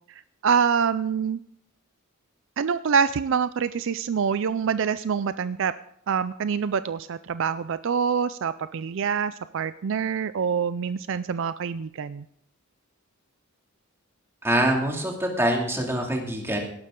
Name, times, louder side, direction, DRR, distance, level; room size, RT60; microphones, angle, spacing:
voice 1, 0.1-1.4 2.6-5.7 6.1-12.2, right 6 dB, 60° right, 14 dB, 0.4 m, -26 dB
voice 2, 14.4-16.6, right 1 dB, 10° right, 0 dB, 2.5 m, -24 dB
17.0 x 12.0 x 3.8 m, 0.69 s
head